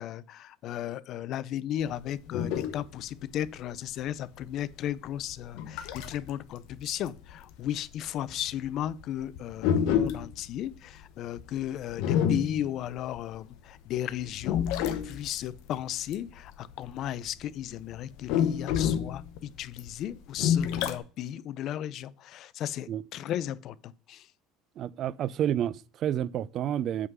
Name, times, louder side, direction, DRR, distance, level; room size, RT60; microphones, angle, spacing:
voice 1, 0.0-14.7 15.0-24.3, left 11 dB, 50° left, 0.4 m, -35 dB
sound 1, 1.8-6.3 6.7-13.6 14.0-17.4 17.7-21.0, left 8 dB, 70° left, 0.9 m, -29 dB
voice 2, 24.8-27.1, right 10 dB, 45° right, 0.4 m, -30 dB
8.1 x 3.7 x 6.0 m
cardioid pair, 135°, 0 cm